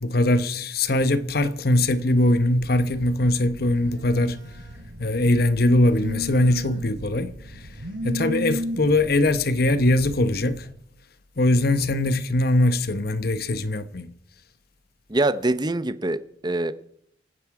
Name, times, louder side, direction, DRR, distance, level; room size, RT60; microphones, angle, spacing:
voice 1, 0.0-4.4 5.0-7.6 8.0-10.7 11.4-14.1, left 1 dB, 55° left, 1.0 m, -21 dB
Telephone, 2.6-10.7, equal, 75° right, 4.3 m, -36 dB
voice 2, 15.1-16.7, right 2 dB, 20° right, 0.7 m, -24 dB
27.0 x 9.7 x 4.8 m
head